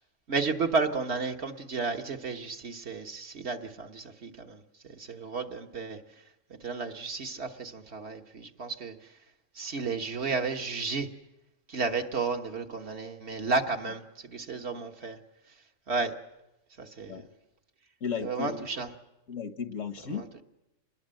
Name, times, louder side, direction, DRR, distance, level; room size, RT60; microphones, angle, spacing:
voice 1, 0.3-6.0 6.5-8.9 9.5-11.1 11.7-15.2 15.9-16.1 16.8-17.3 18.2-18.9 20.1-20.2, right 4 dB, 60° right, 4 dB, 1.6 m, -32 dB
voice 2, 18.0-18.7 19.3-20.2, left 6 dB, 85° left, 9 dB, 1.7 m, -35 dB
26.0 x 20.0 x 7.6 m, 0.95 s
omnidirectional pair, 1.3 m